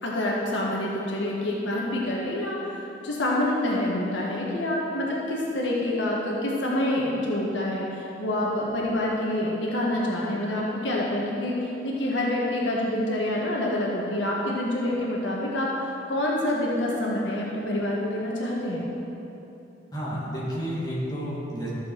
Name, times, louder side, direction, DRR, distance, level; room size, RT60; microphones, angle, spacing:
voice 1, 0.0-18.8, left 1 dB, 80° left, -4 dB, 1.6 m, -27 dB
voice 2, 19.9-21.7, equal, 20° left, -8 dB, 2.5 m, -31 dB
13.5 x 7.1 x 4.5 m, 2.9 s
head